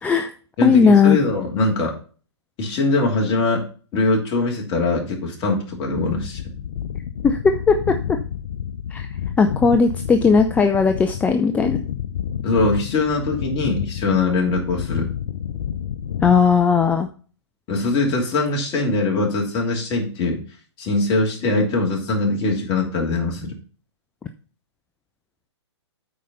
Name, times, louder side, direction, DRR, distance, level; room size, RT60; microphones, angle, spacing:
voice 1, 0.0-0.3 0.6-1.2 7.2-7.9 8.9-9.1 9.4-11.8 16.2-17.1, left 5 dB, 10° left, 7 dB, 0.5 m, -17 dB
voice 2, 0.6-1.9 2.6-3.6 3.9-6.4 12.4-15.1 17.7-20.4 20.8-23.5, left 3 dB, 30° left, 0 dB, 3.1 m, -22 dB
sound 1, 6.0-17.1, left 9 dB, 65° left, 0.8 m, -30 dB
8.5 x 4.9 x 5.5 m, 0.39 s
hypercardioid pair, 130°, 15 cm